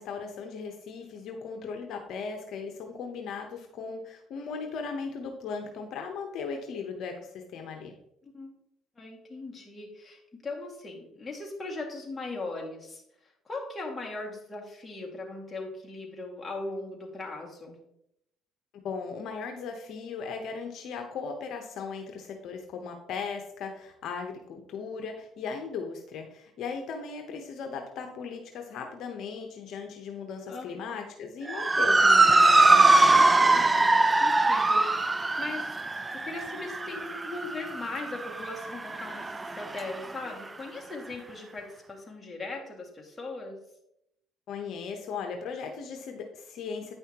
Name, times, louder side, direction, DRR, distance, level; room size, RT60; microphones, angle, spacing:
voice 1, 0.0-7.9 18.8-33.4 44.5-46.9, left 5 dB, 65° left, 4 dB, 0.9 m, -37 dB
voice 2, 9.0-13.0 13.5-17.8 30.5-31.0 33.5-34.9 35.4-35.7 36.1-43.6, left 2 dB, 20° left, -2 dB, 2.0 m, -39 dB
Motor vehicle (road) / Siren, 31.5-40.1, right 2 dB, 20° right, 0.4 m, -22 dB
9.3 x 5.6 x 2.9 m, 0.79 s
cardioid pair, 95°, 0 cm